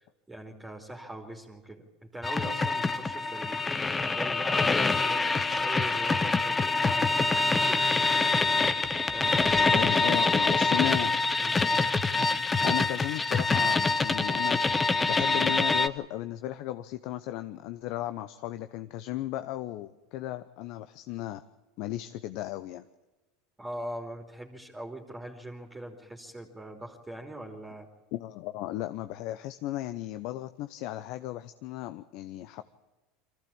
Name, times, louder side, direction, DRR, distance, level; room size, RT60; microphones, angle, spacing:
voice 1, 0.0-8.4 9.1-11.1 11.4-11.6 23.6-27.9, right 1 dB, 10° right, 1 dB, 3.1 m, -42 dB
sound 1, 2.2-15.9, left 3 dB, 20° left, 1.0 m, -25 dB
voice 2, 9.7-11.2 12.6-14.6 15.1-21.4 21.8-22.8 28.1-32.6, left 14 dB, 60° left, 11 dB, 0.8 m, -35 dB
23.5 x 15.0 x 8.8 m, 1.1 s
supercardioid pair, 105°, 0 cm